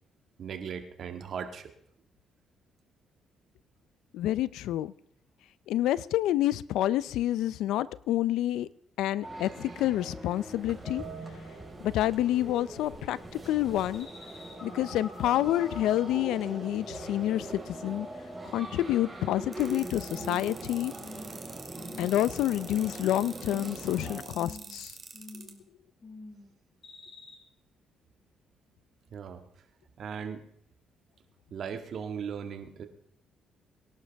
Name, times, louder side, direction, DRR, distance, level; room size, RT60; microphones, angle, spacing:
voice 1, 0.4-1.7 29.1-29.4 30.0-30.4 31.5-32.8, right 7 dB, 60° right, 7 dB, 1.8 m, -38 dB
voice 2, 4.1-4.9 5.7-8.7 9.0-11.0 11.8-13.2 13.5-14.1 14.6-18.1 18.5-20.9 22.0-25.0, left 13 dB, 90° left, 19 dB, 0.5 m, -28 dB
sound 1, 9.2-24.2, right 2 dB, 15° right, 4.9 m, -42 dB
sound 2, 13.9-18.9 19.2-19.7 20.1-20.6 21.0-21.4 21.8-22.3 22.6-23.2 23.5-24.0 24.3-24.8 25.1-25.6 26.0-26.5 26.8-27.3, left 2 dB, 40° left, 7.4 m, -47 dB
sound 3, 19.5-25.5, right 4 dB, 35° right, 2.5 m, -46 dB
23.5 x 11.0 x 3.5 m, 0.68 s
cardioid pair, 90°, 0 cm